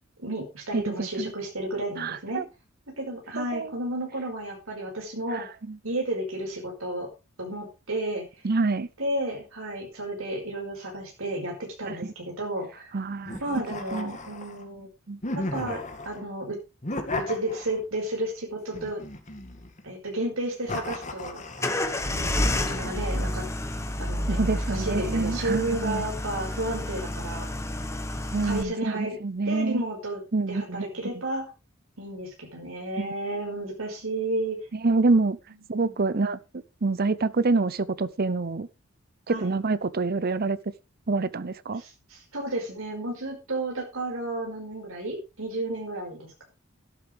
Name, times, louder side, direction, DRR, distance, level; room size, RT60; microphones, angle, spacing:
voice 1, 0.2-2.4 3.0-5.5 5.8-7.1 7.4-8.2 9.0-12.9 13.4-14.9 15.3-16.6 17.2-19.0 19.8-21.4 22.0-23.5 24.0-27.5 28.4-29.2 29.5-30.2 30.5-31.5 32.0-34.6 36.2-36.3 39.3-39.6 41.8-46.4, right 1 dB, 75° right, 5.3 m, -32 dB
voice 2, 0.7-1.3 2.0-2.4 3.4-3.7 5.3-5.8 8.4-8.9 11.9-12.0 12.9-13.4 13.9-14.2 15.1-15.2 24.3-26.0 28.3-29.8 30.3-30.9 33.0-33.1 34.7-35.4 35.7-36.4 36.8-38.7 39.3-40.6 41.1-41.8, right 3 dB, 45° right, 0.7 m, -26 dB
sound 1, 13.3-14.6 15.2-16.2 16.8-18.0 18.7-19.8 20.7-21.9, left 2 dB, 35° left, 2.1 m, -35 dB
sound 2, 21.6-28.6, left 1 dB, 15° left, 1.4 m, -29 dB
13.5 x 11.5 x 3.5 m
head